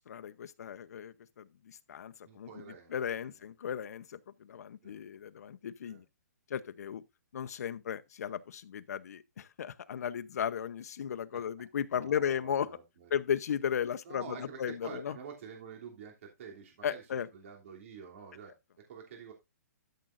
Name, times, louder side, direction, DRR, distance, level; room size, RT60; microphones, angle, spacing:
voice 1, 0.0-2.5 2.9-6.0 6.5-7.0 7.3-12.7 13.1-15.1 16.8-17.3, left 8 dB, 65° left, 0.7 m, -35 dB
voice 2, 2.2-2.9 4.8-5.0 5.8-6.0 11.3-11.4 11.9-13.1 14.0-17.0 17.3-19.3, right 6 dB, 50° right, 3.0 m, -48 dB
13.0 x 7.5 x 2.6 m
hypercardioid pair, 160°, 9 cm